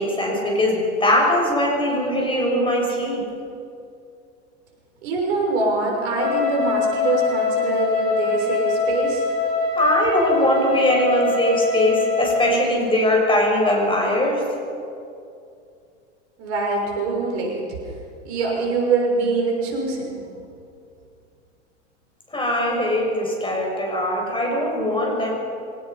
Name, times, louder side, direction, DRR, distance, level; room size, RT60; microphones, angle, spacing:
voice 1, 0.0-3.2 9.8-14.4 22.3-25.3, left 1 dB, 15° left, -1 dB, 7.4 m, -21 dB
voice 2, 5.0-9.3 16.4-17.8 18.2-20.1, right 3 dB, 65° right, 0 dB, 6.1 m, -24 dB
Wind instrument woodwind instrument, 6.1-12.6, left 4 dB, 50° left, 6.5 m, -23 dB
25.5 x 18.0 x 5.7 m, 2.4 s
hypercardioid pair, 90°, 36 cm